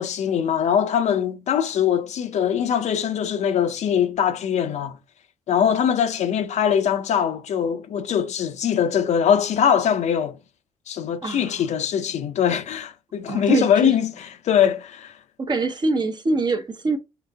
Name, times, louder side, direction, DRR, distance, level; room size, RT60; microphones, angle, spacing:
voice 1, 0.0-5.0 5.5-10.4 10.9-15.1, left 8 dB, 60° left, 0.6 m, -22 dB
voice 2, 11.2-11.5 13.3-13.9 15.4-17.0, right 2 dB, 35° right, 0.8 m, -24 dB
3.9 x 3.2 x 3.3 m
supercardioid pair, 75°, 13 cm